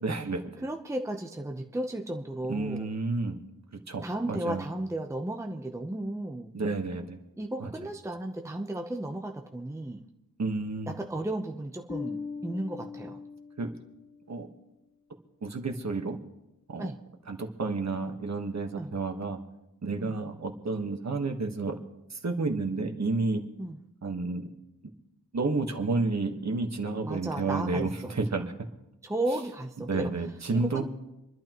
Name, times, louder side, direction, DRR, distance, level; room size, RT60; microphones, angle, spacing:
voice 1, 0.0-0.6 2.5-3.4 3.9-4.6 6.5-7.2 7.6-7.7 10.4-10.9 13.6-13.7 14.3-14.5 15.4-16.2 16.7-16.9 17.3-19.4 19.8-21.8 22.1-23.4 24.0-24.5 25.3-28.5 29.9-30.8, right 3 dB, 50° right, 4 dB, 1.5 m, -30 dB
voice 2, 0.6-2.9 4.0-6.5 7.4-10.0 10.9-13.2 16.8-17.0 18.7-18.9 20.0-20.1 23.6-23.8 27.0-28.2 29.0-30.1 30.5-30.8, right 1 dB, 10° right, 3 dB, 0.8 m, -34 dB
Bass guitar, 11.9-14.3, left 5 dB, 25° left, 0.6 m, -40 dB
27.5 x 11.5 x 3.0 m, 0.93 s
wide cardioid pair, 120°, 35 cm